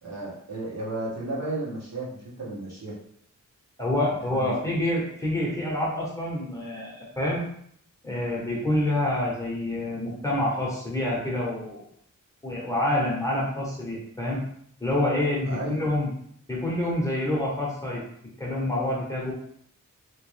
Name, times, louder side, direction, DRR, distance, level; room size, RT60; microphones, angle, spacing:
voice 1, 0.0-3.0 4.3-4.8 15.4-15.9, right 2 dB, 55° right, -6 dB, 1.3 m, -34 dB
voice 2, 3.8-7.4 8.0-11.8 12.4-14.4 14.8-16.1 16.5-18.0 18.4-19.3, left 1 dB, 10° left, -5 dB, 1.0 m, -27 dB
3.2 x 3.0 x 3.2 m, 0.66 s
wide cardioid pair, 150°, 33 cm